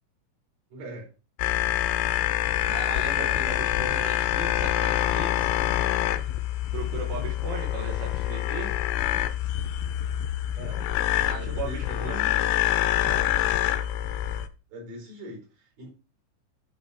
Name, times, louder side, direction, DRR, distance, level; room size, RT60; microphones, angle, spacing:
voice 1, 0.7-1.1 3.2-3.4 10.6-10.9 11.3-12.5 14.7-15.9, right 1 dB, 50° right, -1 dB, 5.9 m, -41 dB
sound 1, 1.4-14.5, left 12 dB, 85° left, 3.2 m, -26 dB
voice 2, 2.7-5.5 6.7-8.8 11.3-12.3 13.0-13.3, right 6 dB, 80° right, -4 dB, 4.1 m, -37 dB
11.0 x 4.6 x 5.0 m, 0.33 s
omnidirectional pair, 5.4 m